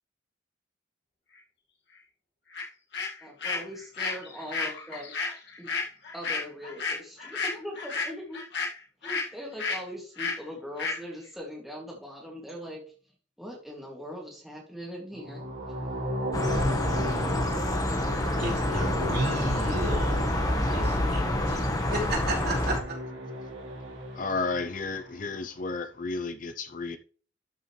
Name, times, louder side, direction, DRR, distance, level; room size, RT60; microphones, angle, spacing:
sound 1, 2.5-2.6 2.9-9.3 9.6-9.8 10.2-10.4 10.8-11.0, left 4 dB, 60° left, 2.0 m, -32 dB
voice 1, 3.2-5.1 5.6-5.7 6.1-8.4 9.0-12.8 13.4-15.4, equal, ahead, 2.3 m, -40 dB
sound 2, 15.1-25.2, equal, 75° right, 2.7 m, -36 dB
sound 3, 16.3-22.8, left 1 dB, 20° left, 1.2 m, -27 dB
voice 2, 18.4-20.4 20.7-21.6 21.9-23.0, right 1 dB, 55° right, 4.2 m, -33 dB
voice 3, 24.1-27.0, left 3 dB, 45° left, 0.5 m, -32 dB
12.5 x 6.0 x 3.2 m
head